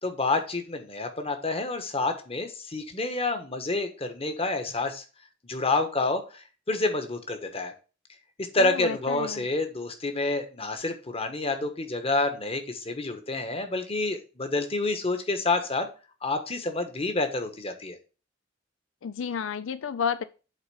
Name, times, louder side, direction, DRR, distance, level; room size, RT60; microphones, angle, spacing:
voice 1, 0.0-5.0 5.4-7.7 8.5-15.9 16.2-18.0, left 3 dB, 30° left, 7 dB, 1.3 m, -28 dB
voice 2, 8.6-9.5 19.0-20.2, left 6 dB, 75° left, 13 dB, 0.4 m, -31 dB
8.1 x 4.0 x 5.5 m, 0.33 s
head